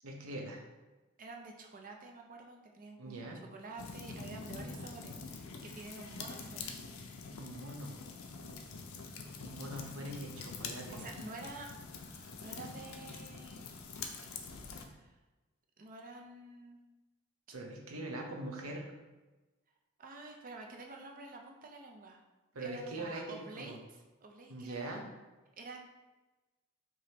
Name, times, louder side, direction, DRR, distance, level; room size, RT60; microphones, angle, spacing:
voice 1, 0.0-0.6 3.0-3.4 7.4-8.0 9.1-11.0 17.5-18.9 22.5-23.8 24.5-25.0, right 1 dB, 80° right, 1 dB, 0.8 m, -42 dB
voice 2, 1.2-3.2 3.5-6.7 10.9-13.7 14.8-15.2 15.8-16.8 20.0-22.2 22.6-25.0 25.5-25.8, right 3 dB, 40° right, 2 dB, 0.5 m, -49 dB
sound 1, 3.8-14.8, left 4 dB, 70° left, 0.5 m, -45 dB
4.8 x 3.0 x 2.8 m, 1.2 s
head